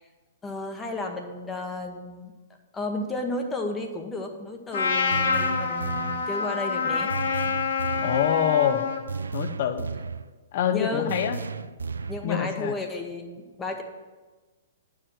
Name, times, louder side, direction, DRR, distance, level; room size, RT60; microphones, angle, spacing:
voice 1, 0.4-2.3 2.7-7.1 10.7-11.2 12.1-13.8, left 2 dB, 15° left, 4 dB, 1.0 m, -32 dB
Trumpet, 4.7-9.0, left 5 dB, 65° left, 1.9 m, -27 dB
sound 1, 5.1-6.3 7.1-8.3 9.1-10.3 11.1-12.3, right 5 dB, 70° right, 0.3 m, -34 dB
voice 2, 8.0-8.9 9.3-9.9 10.5-11.4 12.2-12.7, left 9 dB, 45° left, 9 dB, 0.8 m, -25 dB
11.0 x 4.8 x 7.6 m, 1.3 s
figure-of-eight pair, 115°, 0 cm